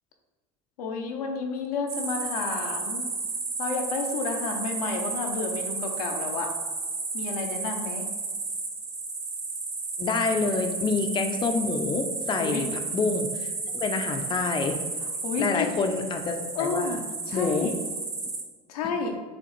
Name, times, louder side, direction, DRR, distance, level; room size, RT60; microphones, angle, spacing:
voice 1, 0.8-3.1 3.6-6.5 7.1-8.1 12.4-12.6 15.2-15.7 16.5-17.0 17.3-17.7 18.7-19.2, left 4 dB, 90° left, 2 dB, 0.7 m, -31 dB
sound 1, 1.9-18.4, right 3 dB, 35° right, 1.2 m, -33 dB
voice 2, 10.0-13.5 13.8-14.8 15.4-17.0 17.3-17.7, left 4 dB, 25° left, 5 dB, 0.5 m, -27 dB
5.0 x 3.1 x 3.1 m, 1.4 s
hypercardioid pair, 85°, 19 cm